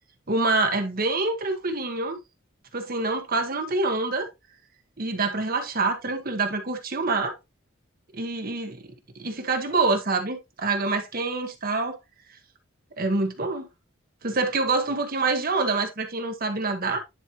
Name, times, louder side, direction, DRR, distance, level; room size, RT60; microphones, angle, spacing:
voice 1, 0.3-2.2 2.7-4.3 5.0-7.3 8.1-8.8 9.1-12.0 13.0-13.7 14.2-17.0, right 3 dB, 45° right, 1.2 m, -26 dB
10.0 x 4.3 x 3.0 m
head